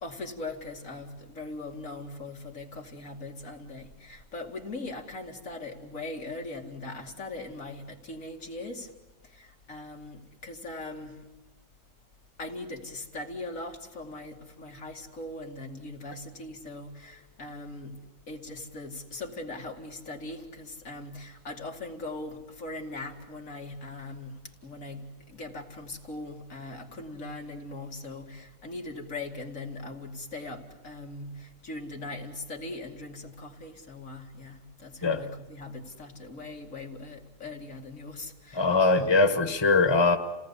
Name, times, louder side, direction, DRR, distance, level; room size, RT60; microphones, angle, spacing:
voice 1, 0.0-8.9 9.2-11.3 12.4-38.8, left 2 dB, 90° left, 2.7 m, -40 dB
voice 2, 38.5-40.2, left 3 dB, 20° left, 1.4 m, -22 dB
29.0 x 18.5 x 8.3 m
omnidirectional pair, 1.3 m